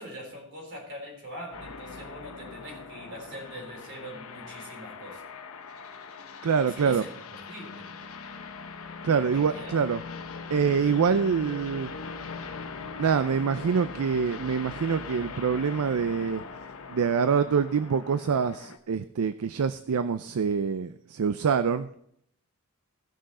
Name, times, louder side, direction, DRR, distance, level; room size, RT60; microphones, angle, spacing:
voice 1, 0.0-5.2 6.7-7.9 9.3-9.8, equal, 55° right, 1 dB, 3.8 m, -42 dB
sound 1, 1.5-18.8, left 4 dB, 70° left, 0.9 m, -41 dB
voice 2, 6.4-7.0 9.0-10.0 10.5-11.9 13.0-16.4 16.9-21.9, right 6 dB, 75° right, 12 dB, 0.4 m, -25 dB
17.0 x 6.3 x 4.2 m, 0.71 s
head